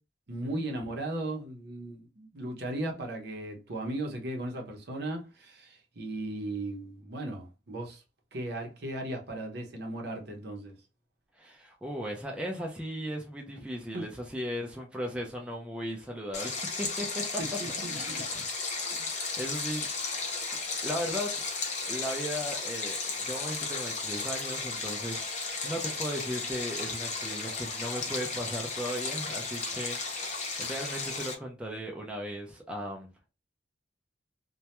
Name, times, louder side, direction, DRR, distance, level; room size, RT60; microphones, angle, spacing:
voice 1, 0.3-8.0 8.3-10.7 13.9-14.1 17.4-18.4 19.0-19.1, right 1 dB, 65° right, 0.7 m, -37 dB
voice 2, 11.4-17.2 17.9-18.5 19.0-19.9 20.1-20.6 20.8-21.5 21.8-33.1, equal, 5° right, 0.5 m, -37 dB
Stream, 16.3-31.3, left 4 dB, 40° left, 0.6 m, -34 dB
2.2 x 2.1 x 2.9 m
head